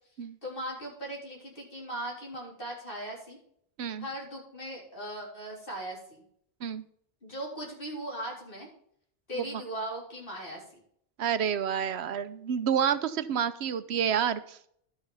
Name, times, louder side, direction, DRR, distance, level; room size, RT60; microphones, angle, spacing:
voice 1, 0.4-3.4 4.0-6.2 7.2-8.7 9.3-10.6, right 1 dB, 60° left, -3 dB, 4.1 m, -38 dB
voice 2, 11.2-14.7, right 8 dB, 90° right, 13 dB, 1.0 m, -29 dB
12.0 x 5.9 x 5.6 m, 0.66 s
omnidirectional pair, 1.1 m